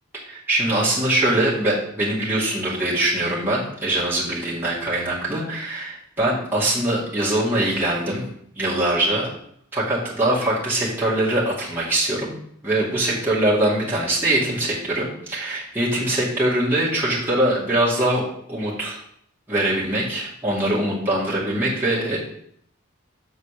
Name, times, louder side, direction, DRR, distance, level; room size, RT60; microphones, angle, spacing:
voice 1, 0.3-8.3 8.6-9.3 9.7-12.4 12.6-18.2 18.5-19.0 19.5-22.2, right 1 dB, 10° right, -8 dB, 2.0 m, -22 dB
7.0 x 4.1 x 6.6 m, 0.69 s
head